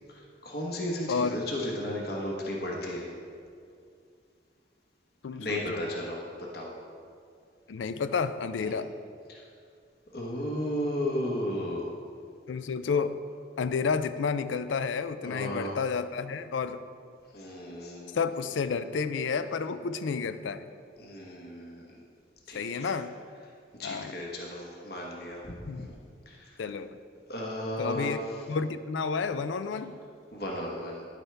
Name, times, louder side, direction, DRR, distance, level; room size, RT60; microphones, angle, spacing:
voice 1, 0.1-3.1 5.4-6.2 6.5-6.7 8.6-8.8 9.3-9.5 10.1-11.9 15.2-15.8 17.3-18.2 21.0-21.8 22.5-22.9 23.8-25.9 26.3-26.6 27.3-28.5 30.3-31.1, left 1 dB, 55° left, -2 dB, 1.2 m, -34 dB
voice 2, 1.1-1.4 5.2-5.8 7.7-8.9 12.5-13.2 13.6-16.8 18.1-20.7 22.5-23.1 23.8-24.1 25.6-25.9 26.6-27.0 27.8-28.2 28.5-30.0, left 5 dB, 85° left, 12 dB, 0.4 m, -30 dB
10.5 x 8.2 x 3.4 m, 2.3 s
head